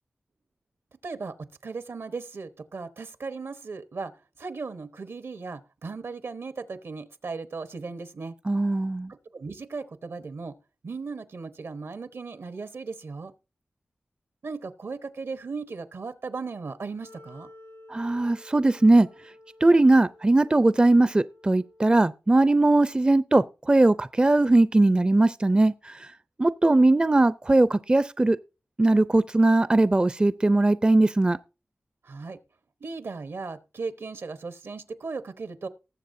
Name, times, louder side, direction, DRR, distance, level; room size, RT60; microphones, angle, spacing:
voice 1, 1.0-4.1 4.4-8.4 9.1-10.5 10.8-13.3 14.4-17.5 32.0-32.4 32.8-35.7, right 4 dB, 75° right, 0.9 m, -37 dB
voice 2, 8.5-9.1 17.9-19.1 19.6-26.1 26.4-28.4 28.8-31.4, right 2 dB, 20° right, 0.4 m, -20 dB
Wind instrument woodwind instrument, 17.0-22.1, left 1 dB, 85° left, 4.4 m, -52 dB
19.5 x 7.3 x 2.6 m
cardioid pair, 55°, 4 cm